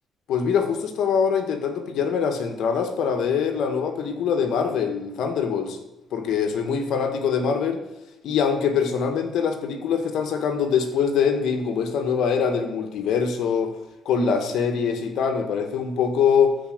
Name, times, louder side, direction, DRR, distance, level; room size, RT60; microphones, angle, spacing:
voice 1, 0.3-5.8 6.1-7.8 8.2-13.7 14.0-16.6, left 6 dB, 75° left, 6 dB, 1.7 m, -23 dB
12.5 x 4.9 x 8.0 m, 0.95 s
cardioid pair, 90°, 0 cm